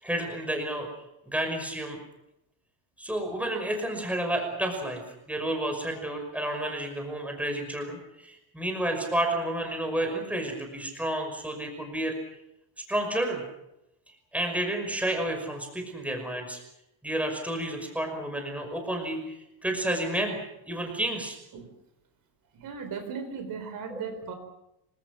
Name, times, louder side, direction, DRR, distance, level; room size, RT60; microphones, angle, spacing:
voice 1, 0.0-0.9 1.3-2.0 3.0-5.0 5.3-12.1 12.9-13.4 14.3-16.6 17.0-20.4 20.7-21.4, right 1 dB, 5° right, 4 dB, 5.7 m, -30 dB
voice 2, 22.5-24.3, right 5 dB, 40° right, 7 dB, 4.7 m, -37 dB
27.0 x 25.0 x 6.2 m, 0.85 s
cardioid pair, 170°, 50 cm